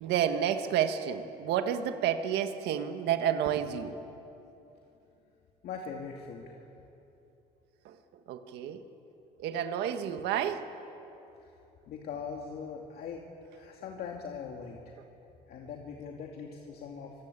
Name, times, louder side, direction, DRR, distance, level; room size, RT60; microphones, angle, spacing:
voice 1, 0.0-3.9 7.8-7.9 8.3-8.8 9.4-10.7, right 9 dB, 85° right, 8 dB, 1.7 m, -30 dB
voice 2, 5.6-6.6 11.4-11.5 11.9-13.3 13.5-14.9 15.5-17.1, left 6 dB, 65° left, 1 dB, 2.4 m, -41 dB
26.0 x 23.0 x 8.4 m, 2.9 s
cardioid pair, 110°, 17 cm